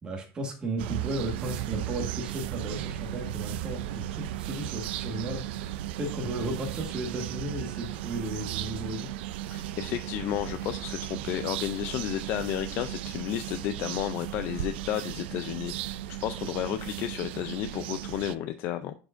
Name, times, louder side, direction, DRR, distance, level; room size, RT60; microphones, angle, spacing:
voice 1, 0.0-5.7 6.0-9.1, right 1 dB, 15° right, 0 dB, 1.6 m, -35 dB
sound 1, 0.8-18.4, right 13 dB, 90° right, 0.4 m, -36 dB
voice 2, 9.5-18.9, left 12 dB, 40° left, 9 dB, 0.4 m, -32 dB
10.5 x 4.7 x 2.5 m, 0.36 s
cardioid pair, 170°, 6 cm